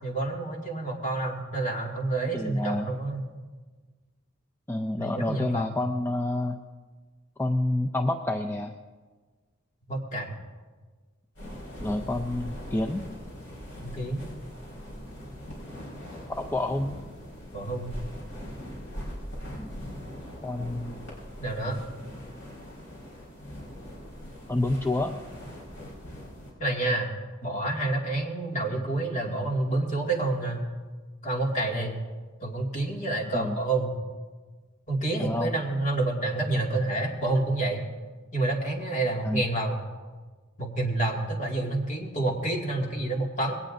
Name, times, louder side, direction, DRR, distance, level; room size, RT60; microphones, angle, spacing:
voice 1, 0.0-3.3 5.0-5.8 9.9-10.3 13.8-14.2 17.5-17.9 21.4-21.8 26.6-27.1 27.4-30.6 31.2-32.0 32.4-34.0 34.9-37.8 38.3-39.8 40.6-43.5, right 2 dB, 35° left, -1 dB, 2.2 m, -28 dB
voice 2, 2.3-2.9 4.7-6.6 7.4-8.7 11.8-13.0 16.3-17.0 19.6-19.7 20.4-21.0 24.5-25.2 33.3-33.6 35.2-35.6 39.2-39.4, left 2 dB, 10° left, 4 dB, 0.5 m, -28 dB
sound 1, 11.3-26.5, equal, 70° left, 4.8 m, -41 dB
20.5 x 17.5 x 2.6 m, 1.4 s
head